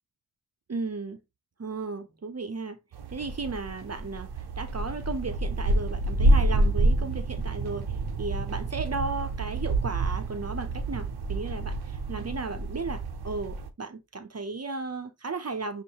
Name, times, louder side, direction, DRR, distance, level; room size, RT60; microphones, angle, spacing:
voice 1, 0.7-1.2 1.6-2.8 3.1-15.8, right 3 dB, 40° right, 0.6 m, -35 dB
sound 1, 2.9-13.7, right 2 dB, 80° right, 0.7 m, -28 dB
6.3 x 2.5 x 2.8 m
wide cardioid pair, 95°, 38 cm